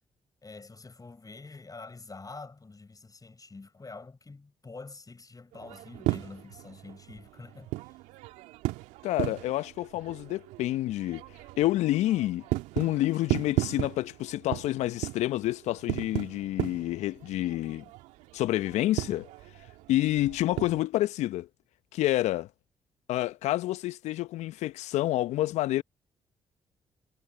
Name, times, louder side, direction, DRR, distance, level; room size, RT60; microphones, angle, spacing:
voice 1, 0.4-8.0, left 3 dB, 30° left, 7.3 m, -46 dB
sound 1, 5.5-20.8, right 19 dB, 75° right, 2.1 m, -36 dB
voice 2, 9.0-11.2 11.6-12.4 12.8-17.8 18.3-19.3 19.9-21.5 21.9-22.5 23.1-25.8, left 15 dB, 70° left, 0.9 m, -28 dB
hypercardioid pair, 40°, 12 cm